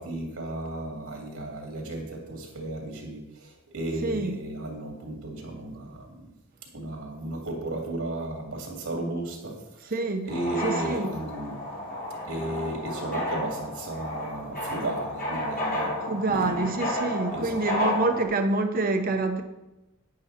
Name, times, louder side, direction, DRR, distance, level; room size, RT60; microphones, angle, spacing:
voice 1, 0.0-6.3 6.7-9.9 10.3-11.6 12.3-16.9 17.3-17.7, right 2 dB, 90° right, 2.6 m, -34 dB
voice 2, 4.0-4.4 9.9-10.3 10.6-11.1 16.1-19.4, right 3 dB, 45° right, 0.8 m, -26 dB
sound 1, 10.3-18.2, left 1 dB, 40° left, 2.3 m, -32 dB
9.6 x 8.7 x 4.3 m
head